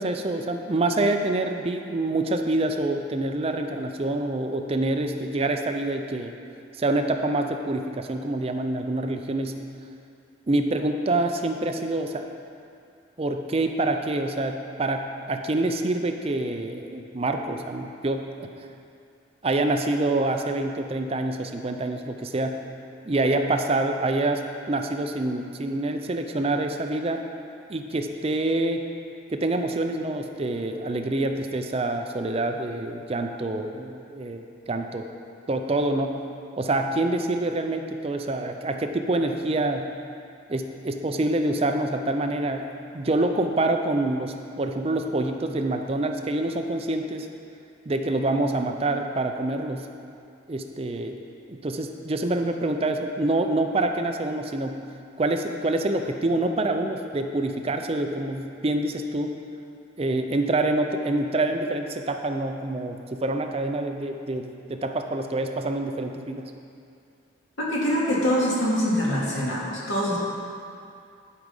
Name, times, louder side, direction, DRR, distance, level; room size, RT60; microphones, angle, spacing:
voice 1, 0.0-6.3 6.8-9.6 10.5-12.2 13.2-18.5 19.4-22.6 23.0-24.4 24.7-27.2 27.7-28.8 29.3-35.0 35.5-36.2 36.6-39.9 40.5-47.3 47.9-49.9 50.5-51.2 51.5-54.8 55.2-59.3 60.0-66.5, right 2 dB, 30° right, 5 dB, 0.5 m, -26 dB
voice 2, 67.6-70.2, equal, 90° left, -6 dB, 2.3 m, -24 dB
11.0 x 5.0 x 5.4 m, 2.5 s
head